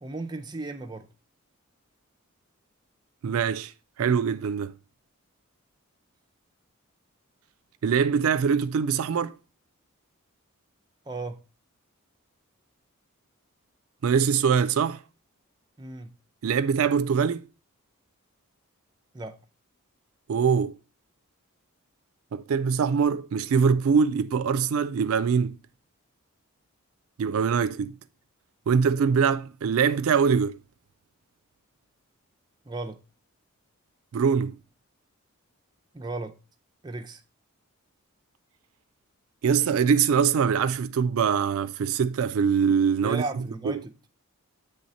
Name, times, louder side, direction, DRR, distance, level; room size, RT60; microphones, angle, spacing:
voice 1, 0.0-1.1 11.1-11.4 15.8-16.1 19.1-19.4 32.7-33.0 35.9-36.4 36.8-37.2 43.0-43.9, right 2 dB, 20° right, 0.5 m, -35 dB
voice 2, 3.2-3.7 4.0-4.7 7.8-9.4 14.0-15.0 16.4-17.4 20.3-20.8 22.3-25.5 27.2-28.0 28.7-30.6 34.1-34.6 39.4-43.8, right 6 dB, 70° right, 0.4 m, -23 dB
7.7 x 3.4 x 4.0 m
head